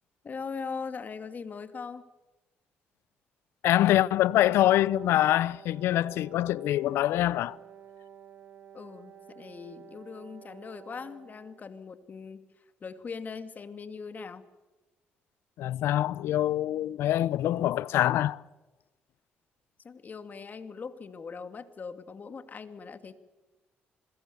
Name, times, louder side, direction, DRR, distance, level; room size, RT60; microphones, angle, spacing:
voice 1, 0.2-2.0 8.7-12.5 12.8-14.5 19.8-23.2, left 5 dB, 45° left, 2.3 m, -40 dB
voice 2, 3.6-7.6 15.6-18.4, left 13 dB, 80° left, 0.7 m, -25 dB
Wind instrument woodwind instrument, 4.9-11.6, right 8 dB, 55° right, 2.9 m, -51 dB
26.5 x 21.5 x 7.0 m
cardioid pair, 75°, 4 cm